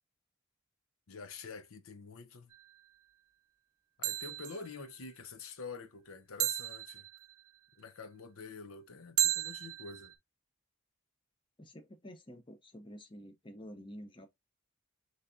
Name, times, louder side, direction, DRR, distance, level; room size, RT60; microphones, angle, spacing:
voice 1, 1.1-2.5 4.0-7.1 7.8-10.1, left 4 dB, 85° left, 0.7 m, -47 dB
sound 1, 2.5-2.8 4.0-4.8 6.4-7.5 9.2-10.1, right 13 dB, 80° right, 0.8 m, -34 dB
voice 2, 11.6-14.3, equal, 25° left, 0.7 m, -49 dB
4.0 x 3.4 x 3.6 m
head